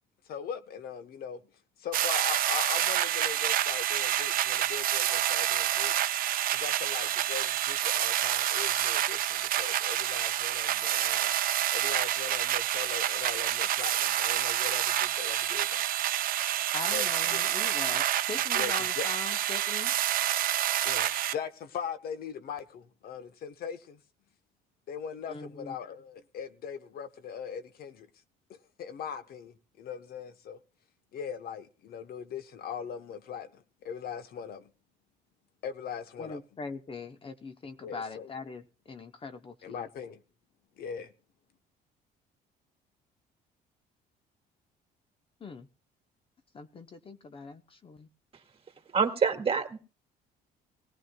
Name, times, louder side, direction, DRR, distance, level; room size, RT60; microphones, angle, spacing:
voice 1, 0.3-1.4 1.8-5.9 6.5-11.3 11.7-15.8 16.9-17.1 17.3-17.4 18.5-19.1 20.8-24.0 24.9-28.1 28.5-30.6 31.1-34.7 35.6-36.4 37.8-38.3 39.6-40.2 40.8-41.1, left 7 dB, 65° left, 1.0 m, -40 dB
sound 1, 1.9-21.3, right 12 dB, 55° right, 0.6 m, -28 dB
voice 2, 16.7-19.9 25.3-25.8 36.2-39.9 45.4-45.7 46.5-48.1, left 4 dB, 30° left, 0.8 m, -41 dB
voice 3, 48.9-49.8, right 6 dB, 35° right, 2.0 m, -26 dB
19.5 x 15.5 x 2.3 m
cardioid pair, 110°, 17 cm